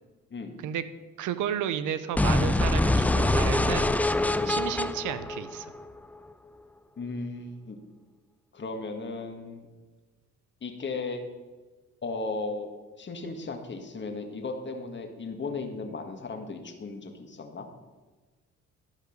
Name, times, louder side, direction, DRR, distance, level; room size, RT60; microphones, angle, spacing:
voice 1, 0.3-0.6 4.4-4.6 7.0-7.8 8.5-9.7 10.6-11.2 12.0-12.7 12.9-17.7, left 3 dB, 40° left, 4 dB, 1.6 m, -36 dB
voice 2, 1.2-4.0 4.4-5.7, right 9 dB, 85° right, 13 dB, 0.8 m, -32 dB
sound 1, 2.2-6.1, left 2 dB, 5° left, 0.4 m, -25 dB
12.0 x 5.1 x 6.4 m, 1.3 s
cardioid pair, 90°, 30 cm